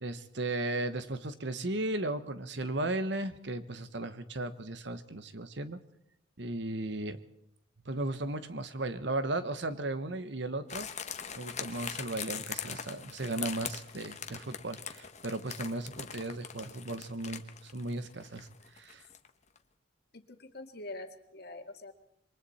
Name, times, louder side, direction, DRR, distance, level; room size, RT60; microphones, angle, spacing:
voice 1, 0.0-5.8 6.4-7.2 7.8-10.9 11.3-18.5 18.7-19.1, right 2 dB, 60° right, 11 dB, 1.2 m, -36 dB
sound 1, 10.7-19.3 19.6-19.7, left 8 dB, 35° left, 1.1 m, -42 dB
voice 2, 20.1-21.9, left 2 dB, 50° left, 5 dB, 2.1 m, -45 dB
27.5 x 23.5 x 4.3 m, 0.73 s
head